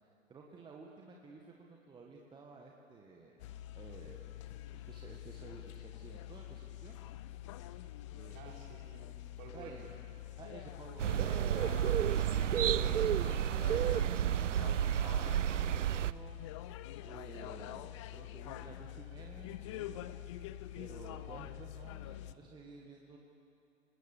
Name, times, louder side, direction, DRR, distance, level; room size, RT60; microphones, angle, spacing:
voice 1, 0.0-3.5 3.7-4.2 4.7-7.0 8.1-8.5 9.5-9.9 10.4-11.7 12.3-16.4 17.0-20.1 20.8-23.2, right 4 dB, 10° right, 0 dB, 1.5 m, -52 dB
sound 1, 3.4-22.3, left 14 dB, 25° left, 0.5 m, -46 dB
voice 2, 8.3-9.9 11.1-11.4, right 5 dB, 35° right, 0 dB, 4.6 m, -54 dB
sound 2, 11.0-16.1, right 10 dB, 65° right, 0.7 m, -31 dB
26.5 x 20.0 x 7.2 m, 2.7 s
figure-of-eight pair, 115°, 40 cm